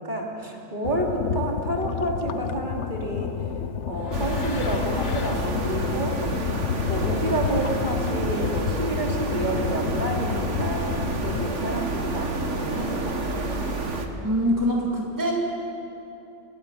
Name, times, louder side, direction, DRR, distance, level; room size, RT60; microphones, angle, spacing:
voice 1, 0.0-3.3 3.9-6.2 6.9-13.3, right 1 dB, 40° right, -1 dB, 3.1 m, -29 dB
sound 1, 0.8-11.5, left 8 dB, 70° left, 1.1 m, -30 dB
sound 2, 4.1-14.1, right 2 dB, 70° right, 2.1 m, -29 dB
voice 2, 14.2-15.3, equal, 15° right, -1 dB, 2.4 m, -24 dB
27.5 x 17.0 x 9.1 m, 2.9 s
omnidirectional pair, 1.3 m